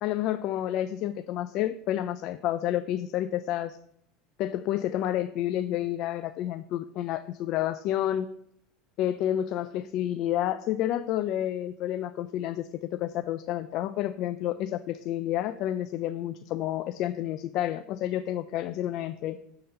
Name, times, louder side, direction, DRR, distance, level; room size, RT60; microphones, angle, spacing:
voice 1, 0.0-3.8 4.4-8.3 9.0-19.4, left 12 dB, 55° left, 11 dB, 0.3 m, -30 dB
7.0 x 3.7 x 6.4 m, 0.74 s
supercardioid pair, 105°, 0 cm